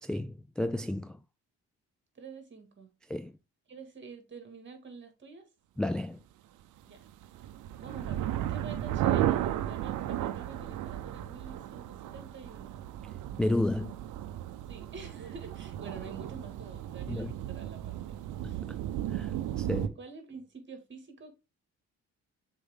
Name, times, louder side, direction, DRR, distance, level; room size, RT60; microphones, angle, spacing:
voice 1, 0.0-1.2 3.1-3.4 5.8-6.2 13.4-14.0 17.1-17.3 18.4-18.8 19.1-20.0, left 1 dB, 5° left, 0.3 m, -32 dB
voice 2, 2.1-2.9 3.7-5.5 6.8-7.1 7.8-12.9 14.7-18.7 20.0-21.3, right 4 dB, 40° right, 2.4 m, -48 dB
sound 1, 7.1-19.9, right 12 dB, 90° right, 0.7 m, -34 dB
6.4 x 4.5 x 3.8 m
cardioid pair, 90°, 30 cm